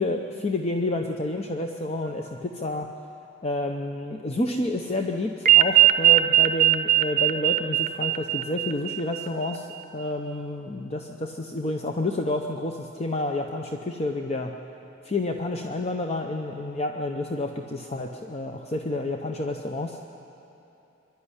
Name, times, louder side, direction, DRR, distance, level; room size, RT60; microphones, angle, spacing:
voice 1, 0.0-2.9 3.4-14.5 15.0-20.0, left 2 dB, 30° left, 3 dB, 0.8 m, -29 dB
sound 1, 5.4-9.6, right 13 dB, 45° right, 0.8 m, -20 dB
24.0 x 12.0 x 9.9 m, 2.9 s
head